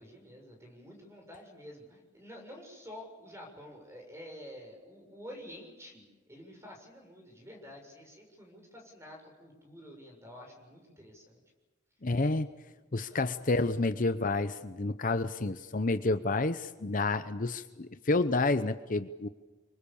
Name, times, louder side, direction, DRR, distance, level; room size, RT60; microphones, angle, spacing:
voice 1, 0.0-11.4 13.1-13.3, equal, 15° right, 2 dB, 6.9 m, -49 dB
voice 2, 12.0-12.5 12.9-19.3, left 2 dB, 45° left, 10 dB, 0.8 m, -29 dB
28.5 x 24.5 x 7.1 m, 1.2 s
head